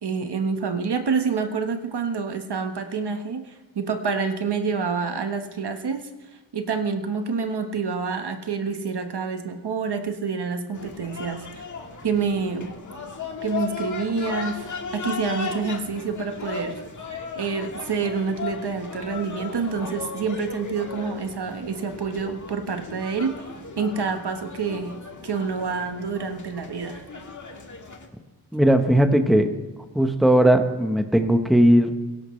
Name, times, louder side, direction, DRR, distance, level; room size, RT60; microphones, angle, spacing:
voice 1, 0.0-6.1 6.5-11.7 12.0-12.7 13.4-16.7 17.3-23.3 23.8-24.9 25.2-27.0, right 5 dB, 65° right, 7 dB, 1.3 m, -27 dB
sound 1, 10.7-28.1, left 4 dB, 45° left, 1.8 m, -36 dB
voice 2, 28.5-29.5 29.9-31.9, right 1 dB, ahead, 6 dB, 1.0 m, -18 dB
22.5 x 11.5 x 3.2 m, 1.3 s
wide cardioid pair, 110°, 43 cm